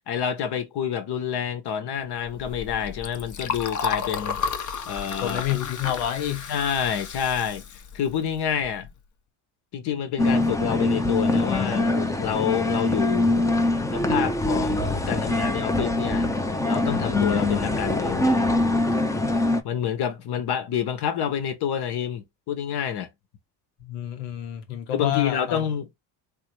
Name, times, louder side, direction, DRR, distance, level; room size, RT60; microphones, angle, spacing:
voice 1, 0.1-4.4 4.9-5.5 6.5-8.9 9.7-13.5 13.9-16.3 16.6-18.6 19.6-23.1 24.9-25.9, left 8 dB, 55° left, 1.2 m, -28 dB
Liquid, 2.2-8.9, left 6 dB, 40° left, 0.9 m, -33 dB
voice 2, 5.2-6.5 23.8-25.6, left 11 dB, 80° left, 1.3 m, -28 dB
sound 1, 10.2-19.6, left 2 dB, 5° left, 0.6 m, -23 dB
3.5 x 2.4 x 3.1 m
supercardioid pair, 85°, 46 cm